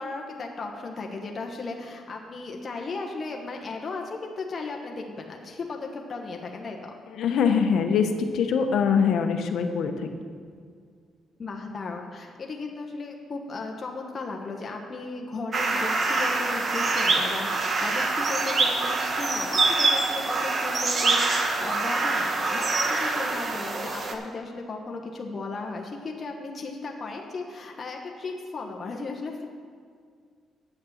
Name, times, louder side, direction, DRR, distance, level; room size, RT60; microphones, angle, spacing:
voice 1, 0.0-6.9 11.4-29.4, left 3 dB, 40° left, 1 dB, 1.2 m, -36 dB
voice 2, 7.2-9.9, left 6 dB, 70° left, 6 dB, 0.9 m, -23 dB
sound 1, 15.5-24.1, right 3 dB, 45° right, 1.1 m, -25 dB
9.2 x 6.6 x 7.2 m, 2.1 s
cardioid pair, 90°, 0 cm